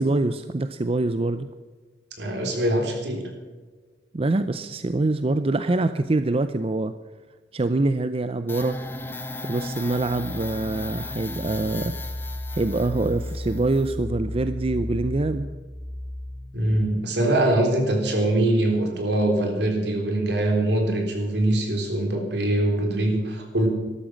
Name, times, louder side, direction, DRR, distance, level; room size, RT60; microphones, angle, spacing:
voice 1, 0.0-1.5 4.1-6.9 7.5-8.8 9.4-15.5, right 2 dB, 35° right, 11 dB, 0.5 m, -25 dB
voice 2, 2.2-3.3 16.5-23.7, right 1 dB, 70° right, 3 dB, 3.7 m, -23 dB
sound 1, 8.5-16.9, left 1 dB, 10° left, 1.1 m, -34 dB
13.0 x 13.0 x 6.1 m, 1.4 s
head